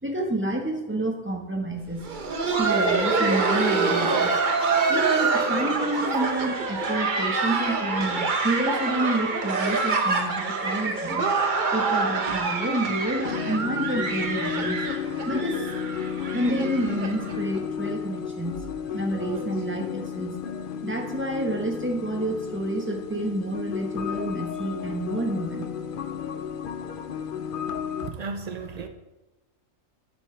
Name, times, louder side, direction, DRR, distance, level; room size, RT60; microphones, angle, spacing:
voice 1, 0.0-2.1 2.4-11.3 11.7-14.9 15.3-15.7 16.3-18.6 18.9-25.7, right 1 dB, 10° right, 1 dB, 1.1 m, -29 dB
Laughter, 1.9-17.6 17.9-18.0 18.5-18.7 19.2-19.4 20.5-20.6, right 4 dB, 40° right, 0.9 m, -26 dB
sound 1, 13.2-28.1, left 8 dB, 60° left, 0.5 m, -33 dB
voice 2, 28.0-28.9, right 4 dB, 85° right, 7 dB, 0.3 m, -34 dB
10.5 x 8.4 x 3.3 m, 1.0 s
omnidirectional pair, 1.4 m